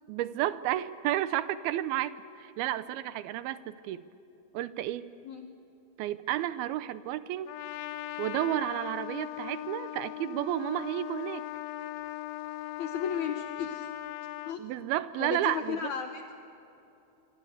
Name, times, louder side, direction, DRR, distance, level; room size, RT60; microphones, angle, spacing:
voice 1, 0.1-4.1 4.5-5.1 6.0-7.6 8.2-11.5 14.6-15.9, right 13 dB, 85° right, 14 dB, 2.6 m, -32 dB
Trumpet, 7.5-14.6, left 16 dB, 80° left, 2.5 m, -39 dB
voice 2, 12.8-13.9 14.5-14.6 15.2-16.4, left 7 dB, 65° left, 5 dB, 2.1 m, -34 dB
25.5 x 25.0 x 7.9 m, 2.8 s
omnidirectional pair, 4.4 m